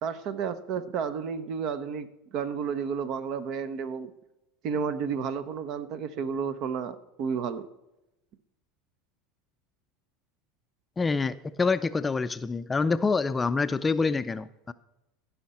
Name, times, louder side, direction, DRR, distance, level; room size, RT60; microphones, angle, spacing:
voice 1, 0.0-4.1 4.6-7.7, right 6 dB, 55° right, 13 dB, 0.8 m, -32 dB
voice 2, 11.0-14.7, left 4 dB, 20° left, 13 dB, 0.4 m, -26 dB
15.5 x 5.8 x 4.2 m, 0.95 s
hypercardioid pair, 90°, 0 cm